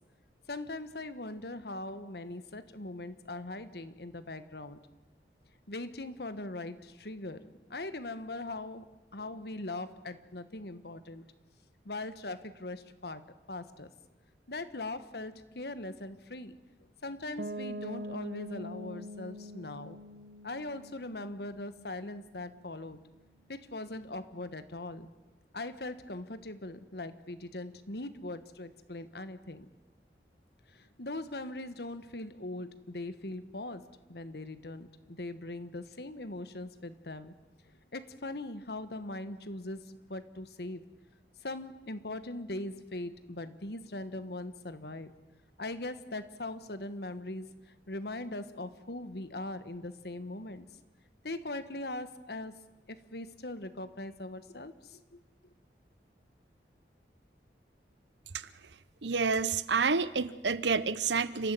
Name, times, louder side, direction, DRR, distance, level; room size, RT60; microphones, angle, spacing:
voice 1, 0.5-4.8 5.7-11.2 11.8-13.2 13.5-13.9 14.5-16.6 17.0-20.0 20.4-23.0 23.5-25.1 25.5-29.7 30.7-37.3 37.9-40.8 41.4-45.1 45.6-47.5 47.9-50.7 51.2-52.6 52.9-55.2, left 2 dB, 65° left, 12 dB, 1.4 m, -40 dB
Piano, 17.4-23.1, equal, 60° right, 1.1 m, -44 dB
voice 2, 59.0-61.5, right 5 dB, 85° right, 16 dB, 0.9 m, -29 dB
30.0 x 13.5 x 9.0 m, 1.1 s
head